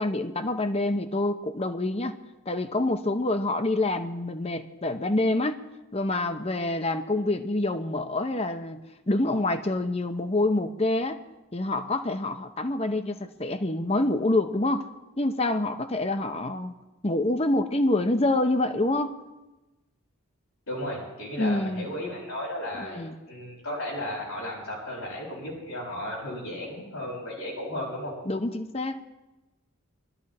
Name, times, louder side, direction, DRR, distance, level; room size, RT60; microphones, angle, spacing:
voice 1, 0.0-2.2 2.5-5.6 5.9-11.2 11.5-14.9 15.2-16.7 17.0-19.2 21.4-21.9 22.8-23.1 28.3-29.0, left 2 dB, 25° left, 8 dB, 0.8 m, -26 dB
voice 2, 20.7-28.1, left 1 dB, 85° left, -4 dB, 6.6 m, -34 dB
23.0 x 13.0 x 4.3 m, 1.0 s
head